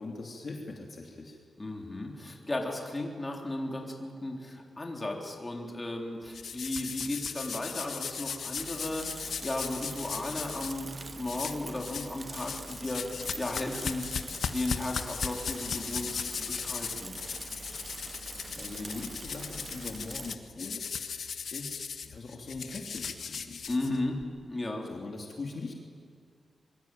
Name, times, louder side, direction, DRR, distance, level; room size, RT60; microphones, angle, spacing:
voice 1, 0.0-1.4 18.5-20.8 21.5-21.8 22.1-23.6 24.9-25.7, left 3 dB, 45° left, 1 dB, 3.0 m, -41 dB
voice 2, 1.6-10.9 11.2-14.1 14.5-17.1 23.7-24.2 24.5-24.9, left 2 dB, 20° left, 1 dB, 3.8 m, -35 dB
sound 1, 6.3-10.7 11.3-12.1 12.3-24.2, left 6 dB, 75° left, 1.6 m, -37 dB
Bicycle / Mechanisms, 8.6-20.4, right 3 dB, 30° right, 1.0 m, -45 dB
sound 2, 10.0-19.9, right 3 dB, 45° right, 3.7 m, -55 dB
25.0 x 23.0 x 9.3 m, 2.2 s
wide cardioid pair, 140°, 0 cm